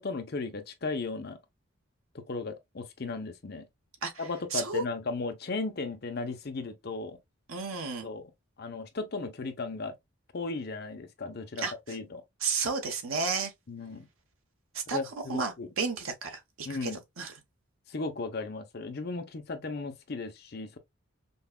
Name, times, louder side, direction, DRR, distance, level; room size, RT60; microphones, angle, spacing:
voice 1, 0.0-1.4 2.3-3.6 4.2-7.2 8.0-8.3 8.6-9.9 10.3-12.2 13.7-14.1 14.9-15.7 16.6-17.0 17.9-20.8, left 3 dB, 45° left, 0.6 m, -36 dB
voice 2, 4.5-4.8 7.5-8.1 11.6-11.7 12.4-13.5 14.7-16.9 17.2-17.3, right 4 dB, 75° right, 1.0 m, -32 dB
5.3 x 2.3 x 2.2 m
head